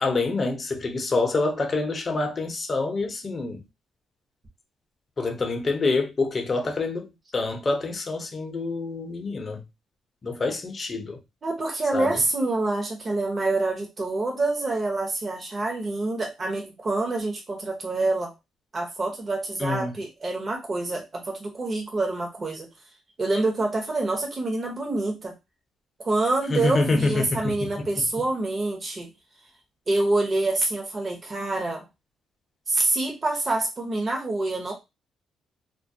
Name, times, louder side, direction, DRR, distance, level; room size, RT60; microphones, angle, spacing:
voice 1, 0.0-3.6 5.2-9.6 10.2-11.2 11.9-12.2 19.6-20.0 26.5-27.6, left 3 dB, 35° left, 0.6 m, -26 dB
voice 2, 11.4-18.3 18.7-22.7 23.2-25.3 26.0-29.1 29.9-31.9 32.7-34.7, right 2 dB, 35° right, 0.7 m, -26 dB
2.3 x 2.1 x 2.6 m
cardioid pair, 90°, 0 cm